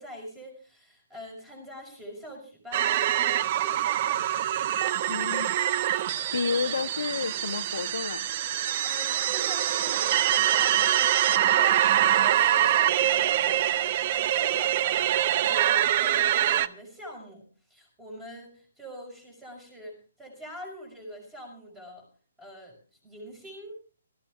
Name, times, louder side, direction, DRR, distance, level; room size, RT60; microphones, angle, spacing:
voice 1, 0.0-4.2 8.8-22.0 22.4-22.8 23.0-23.8, equal, 10° right, 2 dB, 5.6 m, -44 dB
sound 1, 2.7-16.7, right 12 dB, 35° right, 0.6 m, -24 dB
voice 2, 5.1-5.5 6.3-8.3, left 6 dB, 55° left, 16 dB, 0.8 m, -30 dB
18.0 x 14.5 x 3.5 m, 0.39 s
figure-of-eight pair, 130°, 0 cm